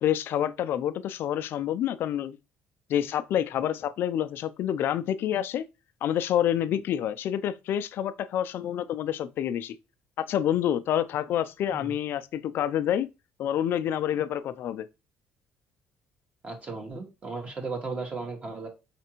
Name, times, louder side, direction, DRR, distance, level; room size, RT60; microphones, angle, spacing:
voice 1, 0.0-2.4 2.9-5.6 6.0-9.8 10.2-13.1 13.4-14.9, left 10 dB, 65° left, 0.4 m, -28 dB
voice 2, 16.4-18.7, right 3 dB, 30° right, 1.7 m, -35 dB
5.1 x 3.3 x 3.0 m
cardioid pair, 105°, 4 cm